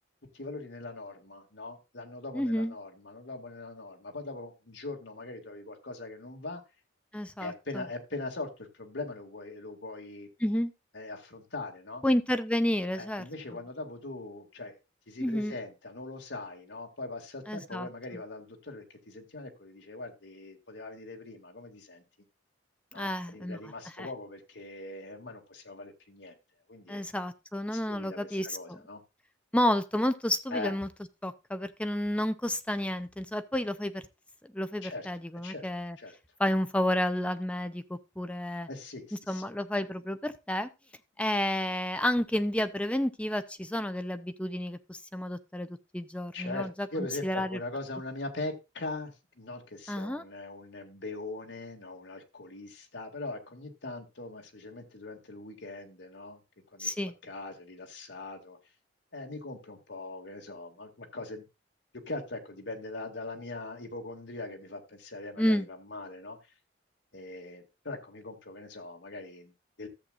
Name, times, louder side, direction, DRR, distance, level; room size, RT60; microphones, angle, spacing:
voice 1, 0.3-6.6 7.4-10.3 10.9-12.0 13.0-14.8 15.1-22.0 22.9-26.4 26.7-27.0 27.7-29.0 30.5-30.7 34.8-35.1 35.3-35.7 36.0-36.2 38.7-39.4 46.3-56.4 56.7-57.0 57.2-58.6 59.1-61.5 62.1-66.4 67.1-69.9, left 2 dB, 75° left, 3 dB, 2.2 m, -41 dB
voice 2, 2.3-2.7 7.1-7.8 10.4-10.7 12.0-13.2 15.2-15.5 17.5-17.9 22.9-23.6 24.0-24.1 26.9-28.8 29.5-30.9 31.2-34.0 34.5-36.0 36.4-38.7 39.3-40.7 41.2-46.9 47.2-47.6 49.9-50.2 56.8-57.1 65.4-65.7, left 1 dB, 5° left, 10 dB, 0.6 m, -30 dB
13.5 x 7.7 x 2.5 m, 0.26 s
head